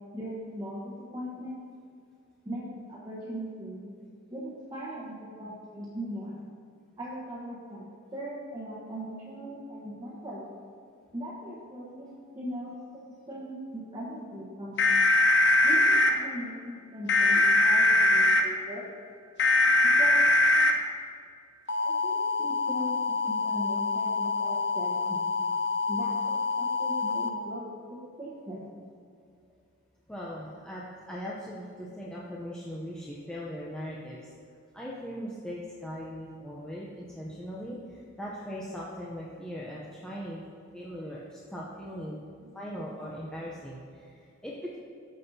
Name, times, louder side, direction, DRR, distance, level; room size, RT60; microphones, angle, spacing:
voice 1, 0.1-1.7 2.4-3.9 4.3-6.4 7.0-10.5 11.1-15.0 15.6-18.9 19.8-20.3 21.8-25.2 25.9-28.7 42.1-42.5, equal, 20° right, -8 dB, 1.1 m, -39 dB
sound 1, 14.8-16.1 17.1-18.4 19.4-20.7 21.7-27.3, left 2 dB, 55° left, 0.6 m, -23 dB
voice 2, 30.1-34.2 34.7-40.4 40.7-42.2 42.5-44.8, equal, 5° left, -6 dB, 0.6 m, -39 dB
13.5 x 5.4 x 2.7 m, 2.3 s
head